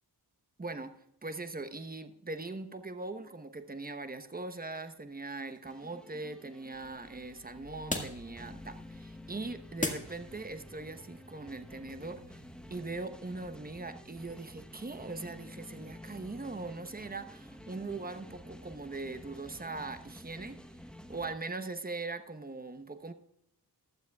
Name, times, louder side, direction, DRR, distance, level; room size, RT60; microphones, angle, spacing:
voice 1, 0.6-12.4 12.7-20.8 21.1-23.1, right 3 dB, 20° right, 1.0 m, -41 dB
sound 1, 4.6-10.7, left 1 dB, 20° left, 1.8 m, -42 dB
sound 2, 5.6-21.3, left 1 dB, ahead, 1.0 m, -51 dB
sound 3, 6.7-13.0, left 2 dB, 80° left, 3.4 m, -57 dB
16.0 x 12.0 x 2.3 m
wide cardioid pair, 70°, 39 cm